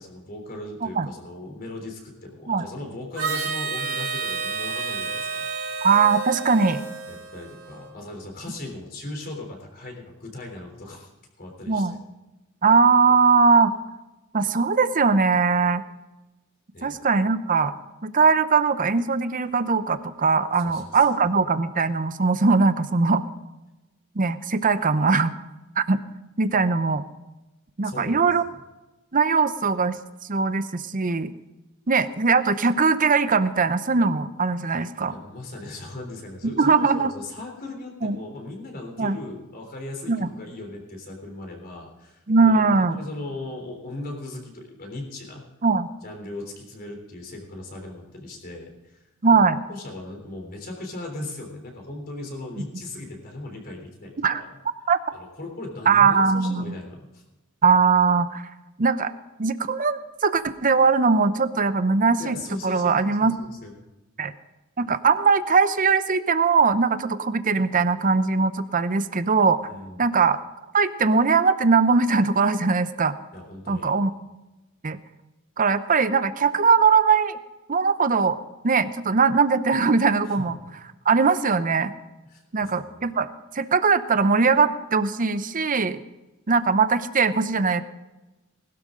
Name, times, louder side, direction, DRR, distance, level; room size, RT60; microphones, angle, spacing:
voice 1, 0.0-5.5 7.1-11.1 11.4-11.9 16.7-17.0 20.6-21.1 27.8-28.2 35.1-45.4 46.0-49.0 49.3-49.4 49.7-54.5 55.1-57.2 62.2-63.7 69.6-70.0 73.3-73.9 82.3-83.0, left 2 dB, 45° left, 2 dB, 3.5 m, -38 dB
Harmonica, 3.1-7.9, right 5 dB, 80° right, 3.5 m, -30 dB
voice 2, 5.8-6.8 11.7-12.0 12.6-13.7 14.3-15.8 16.8-17.7 18.0-23.2 24.1-25.3 25.8-26.0 26.4-27.0 27.8-28.4 29.1-30.0 30.3-31.3 31.9-35.1 36.6-37.1 38.0-38.2 39.0-39.2 40.1-40.3 42.3-43.0 45.6-45.9 49.2-49.6 54.2-54.4 54.9-55.0 55.9-56.7 57.6-58.5 58.8-59.1 59.4-62.4 62.6-63.3 64.2-64.3 64.8-69.7 70.0-70.4 70.7-73.2 73.7-74.1 74.8-75.0 75.6-77.4 77.7-78.4 78.6-80.6 81.1-81.9 82.5-83.3 83.5-86.0 86.5-87.8, right 4 dB, 40° right, 12 dB, 0.7 m, -20 dB
20.0 x 12.5 x 3.8 m, 1.1 s
head